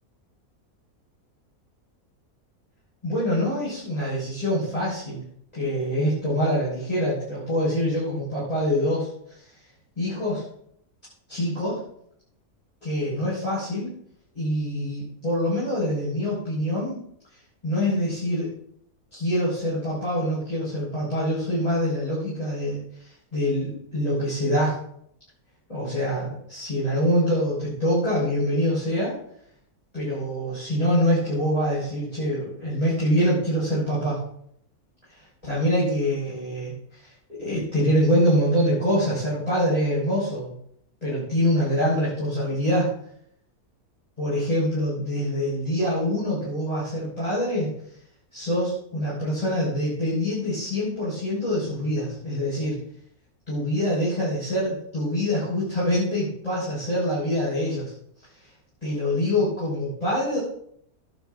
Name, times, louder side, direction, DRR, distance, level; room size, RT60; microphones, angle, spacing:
voice 1, 3.0-5.2 5.5-9.1 10.0-10.4 11.3-11.8 12.8-13.9 14.3-17.0 17.6-18.5 19.1-24.8 25.7-29.2 29.9-34.2 35.4-36.7 37.3-40.5 41.0-42.9 44.2-47.7 48.3-52.8 53.5-57.9 58.8-60.4, equal, 25° left, -10 dB, 5.5 m, -25 dB
18.5 x 8.4 x 2.6 m, 0.68 s
omnidirectional pair, 1.6 m